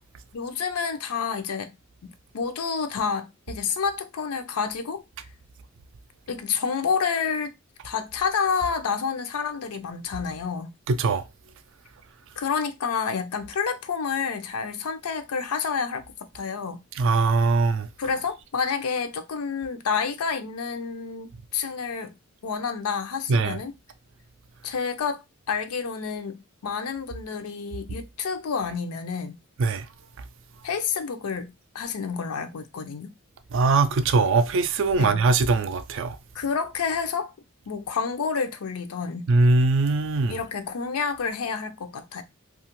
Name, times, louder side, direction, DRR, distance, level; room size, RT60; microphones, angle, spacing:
voice 1, 0.3-1.7 2.0-5.0 6.3-7.5 7.8-10.7 12.4-16.8 18.0-22.1 22.4-23.7 24.6-25.2 25.5-29.4 30.6-33.1 34.9-35.2 36.3-37.3 37.7-39.3 40.3-42.2, left 6 dB, 90° left, 0.5 m, -29 dB
voice 2, 10.9-11.2 17.0-17.9 23.3-23.6 29.6-29.9 33.5-36.2 39.3-40.4, right 3 dB, 60° right, 0.4 m, -21 dB
2.7 x 2.4 x 2.9 m
head